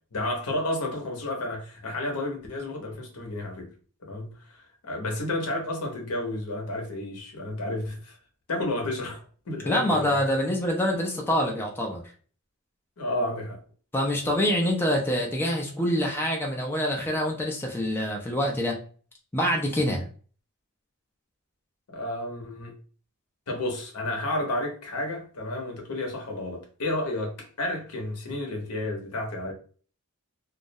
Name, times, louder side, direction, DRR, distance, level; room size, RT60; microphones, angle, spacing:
voice 1, 0.1-3.7 4.0-8.2 8.5-10.2 13.0-13.6 19.7-19.8 21.9-22.8 23.5-29.5, left 1 dB, 75° left, 0.7 m, -31 dB
voice 2, 9.7-12.0 13.9-18.8 19.3-20.1, equal, 10° left, 0.4 m, -26 dB
2.3 x 2.0 x 2.6 m
head